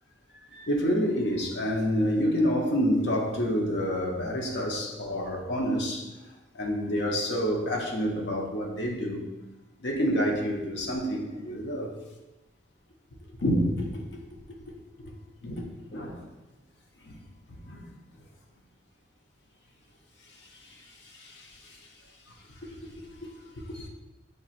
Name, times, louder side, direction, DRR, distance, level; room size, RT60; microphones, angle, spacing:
voice 1, 0.5-6.1 6.5-9.3 9.8-12.0 13.4-14.3 15.0-15.1 15.4-16.3 17.0-17.2 17.5-17.9 20.2-21.9 22.3-23.9, equal, 70° left, 1 dB, 0.7 m, -29 dB
6.4 x 2.9 x 2.4 m, 1.1 s
head